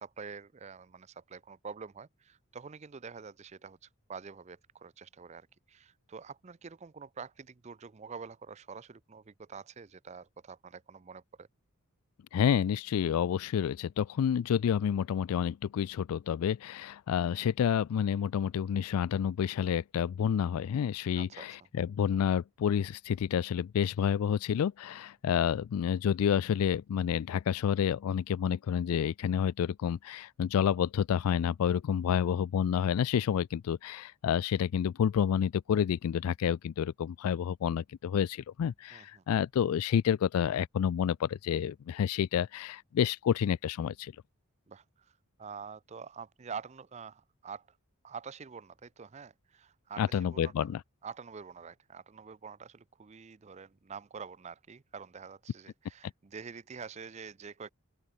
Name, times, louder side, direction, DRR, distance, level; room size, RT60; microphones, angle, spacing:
voice 1, 0.0-11.5 21.2-21.5 38.9-39.2 44.7-47.8 48.0-50.7 51.0-57.7, right 5 dB, 30° right, 0.4 m, -46 dB
voice 2, 12.3-44.1 50.0-50.8, left 8 dB, 80° left, 0.3 m, -29 dB
open air
head